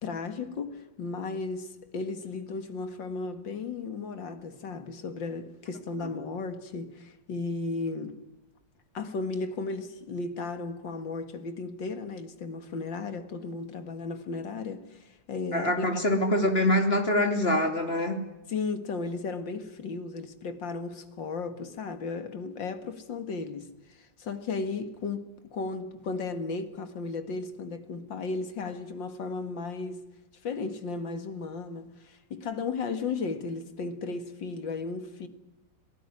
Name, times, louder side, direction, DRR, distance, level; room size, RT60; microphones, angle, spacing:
voice 1, 0.0-8.2 8.9-15.9 18.5-30.1 30.4-35.3, left 4 dB, 80° left, 2.5 m, -35 dB
voice 2, 15.5-18.2, left 1 dB, 30° left, 3.2 m, -24 dB
26.5 x 18.5 x 9.9 m
omnidirectional pair, 2.0 m